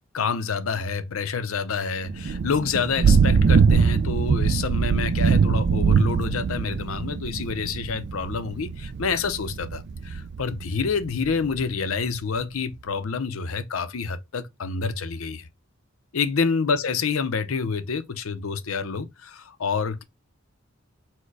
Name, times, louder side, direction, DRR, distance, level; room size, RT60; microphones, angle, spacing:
voice 1, 0.1-15.5 16.1-20.0, left 5 dB, 75° left, 0.6 m, -28 dB
Thunder / Rain, 2.1-11.6, right 5 dB, 55° right, 0.3 m, -22 dB
4.5 x 2.2 x 4.6 m
head